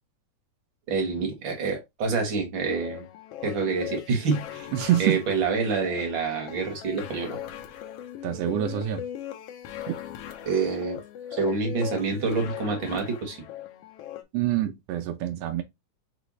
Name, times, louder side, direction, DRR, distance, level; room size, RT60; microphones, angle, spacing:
voice 1, 0.9-3.0 3.4-4.7 5.0-7.3 10.5-11.0 11.4-13.4, right 4 dB, 50° right, 1.8 m, -27 dB
sound 1, 2.6-14.2, left 10 dB, 90° left, 1.3 m, -39 dB
voice 2, 4.7-5.2 8.2-9.0 9.9-10.0 14.3-15.6, right 12 dB, 90° right, 1.4 m, -26 dB
4.7 x 3.4 x 3.0 m
omnidirectional pair, 3.6 m